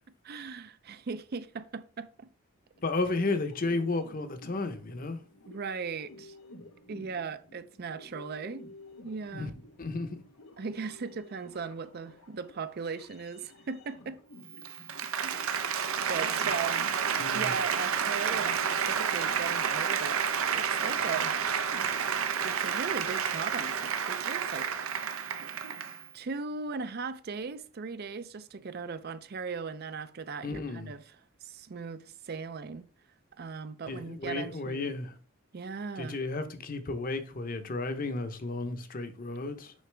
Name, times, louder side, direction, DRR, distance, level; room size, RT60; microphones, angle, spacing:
voice 1, 0.2-2.3 5.5-6.3 6.9-8.6 9.0-9.5 10.6-14.2 15.2-16.9 17.3-21.4 22.4-24.9 26.1-31.2 31.4-32.9 33.4-34.9 35.5-36.2, right 5 dB, 50° right, 0.4 m, -38 dB
sound 1, 2.8-22.1, left 2 dB, 85° left, 0.9 m, -52 dB
voice 2, 2.8-5.2 9.3-9.5 9.8-10.2 17.2-17.5 30.4-30.9 33.9-35.1 36.0-39.7, left 3 dB, 40° left, 0.8 m, -33 dB
Applause, 14.5-26.1, right 7 dB, 85° right, 0.7 m, -30 dB
6.4 x 5.8 x 3.3 m
head